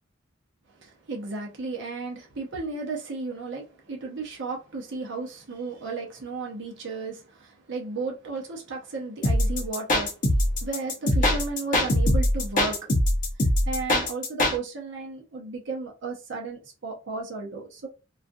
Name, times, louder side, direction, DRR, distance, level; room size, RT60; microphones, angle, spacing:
voice 1, 1.1-10.1 10.6-12.9 13.7-17.9, right 4 dB, 65° right, 0.7 m, -34 dB
sound 1, 9.2-14.6, left 1 dB, 40° left, 0.6 m, -22 dB
2.4 x 2.3 x 2.6 m
head